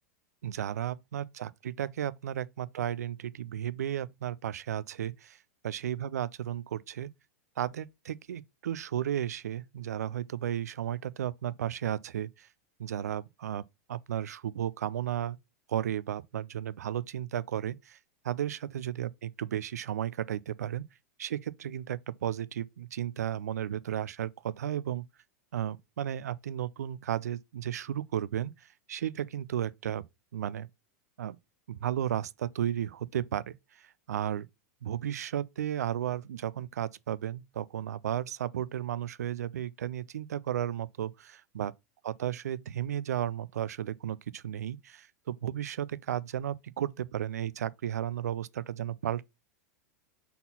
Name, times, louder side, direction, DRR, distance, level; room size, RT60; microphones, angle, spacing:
voice 1, 0.4-5.4 5.6-7.1 7.6-12.5 12.8-13.6 13.9-15.4 15.7-18.0 18.2-20.8 21.2-25.0 25.5-30.0 30.3-30.7 31.2-31.4 31.7-34.5 34.8-41.7 42.0-49.2, right 10 dB, 90° right, 0.4 m, -34 dB
4.2 x 4.1 x 5.5 m
hypercardioid pair, 115°, 8 cm